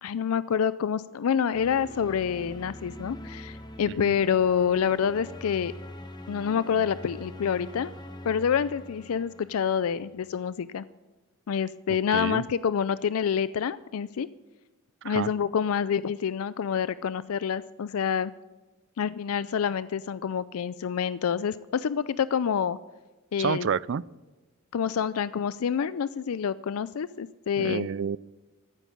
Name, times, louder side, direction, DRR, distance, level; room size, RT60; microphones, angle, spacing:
voice 1, 0.0-5.7 6.3-7.9 8.2-10.8 11.5-14.3 15.0-18.3 19.0-22.8 23.3-23.7 24.7-27.9, left 7 dB, 75° left, 16 dB, 0.4 m, -27 dB
sound 1, 1.5-10.4, left 1 dB, 20° left, 1.1 m, -44 dB
voice 2, 12.1-12.4 15.0-15.3 23.4-24.0 27.6-28.2, right 6 dB, 55° right, 21 dB, 0.4 m, -29 dB
14.5 x 9.1 x 8.5 m, 1.2 s
head